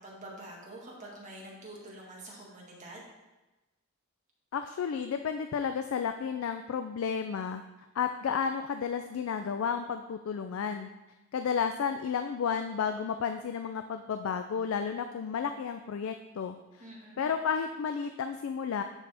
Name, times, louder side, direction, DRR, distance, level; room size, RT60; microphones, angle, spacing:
voice 1, 0.0-3.0 16.8-17.3, right 1 dB, 35° right, -4 dB, 1.6 m, -46 dB
voice 2, 4.5-7.6 7.9-10.9 11.3-16.9 17.2-18.8, left 6 dB, 65° left, 7 dB, 0.3 m, -32 dB
11.0 x 4.1 x 3.4 m, 1.1 s
head